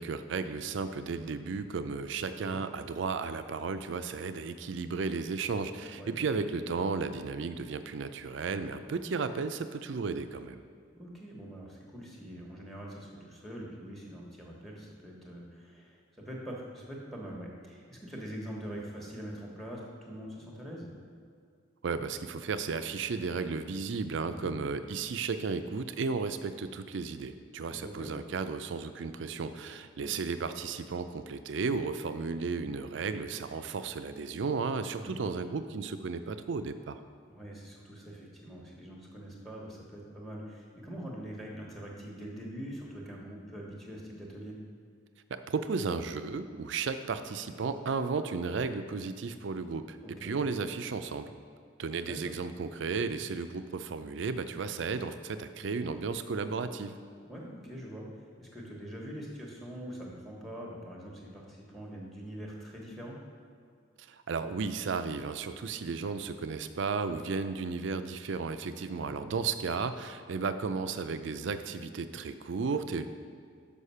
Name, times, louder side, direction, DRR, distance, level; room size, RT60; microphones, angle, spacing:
voice 1, 0.0-10.6 21.8-37.0 45.3-51.3 51.8-57.0 64.0-73.1, right 4 dB, 65° right, 10 dB, 0.4 m, -34 dB
voice 2, 2.2-2.6 5.9-6.2 10.9-20.9 24.3-24.5 27.7-28.1 30.0-30.1 34.9-35.2 37.3-44.5 50.0-50.4 52.0-52.4 57.3-63.2 66.0-66.2 68.9-69.2, equal, ahead, -2 dB, 1.1 m, -44 dB
6.5 x 5.3 x 5.5 m, 2.2 s
head